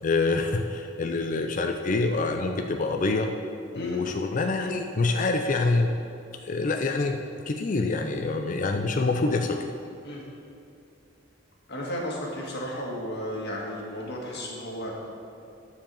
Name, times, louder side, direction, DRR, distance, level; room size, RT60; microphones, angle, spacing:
voice 1, 0.0-3.3 3.7-5.9 6.4-7.2 7.5-9.7, left 3 dB, 40° left, 4 dB, 0.5 m, -26 dB
voice 2, 3.7-4.1 10.0-10.2 11.7-15.0, equal, 55° left, -3 dB, 1.9 m, -34 dB
10.5 x 5.0 x 6.9 m, 2.5 s
head